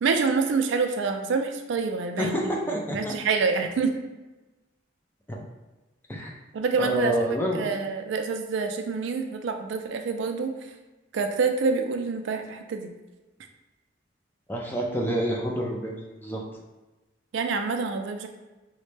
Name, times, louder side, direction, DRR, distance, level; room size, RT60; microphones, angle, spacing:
voice 1, 0.0-2.4 2.9-4.0 6.5-7.3 7.5-10.5 11.1-12.9 17.3-18.3, right 4 dB, 75° right, 6 dB, 0.3 m, -26 dB
voice 2, 2.2-3.1 5.3-5.4 6.1-6.3 6.8-7.7 14.5-16.4, right 1 dB, 10° left, -1 dB, 0.4 m, -28 dB
4.0 x 2.1 x 3.2 m, 1.1 s
head